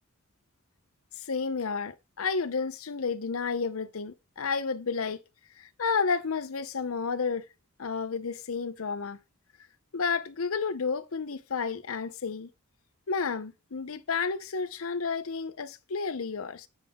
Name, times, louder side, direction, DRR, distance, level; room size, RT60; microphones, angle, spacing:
voice 1, 1.2-5.2 5.6-7.4 7.8-9.2 9.9-12.5 13.1-16.7, left 5 dB, 85° left, 0.7 m, -31 dB
9.0 x 6.1 x 3.6 m
head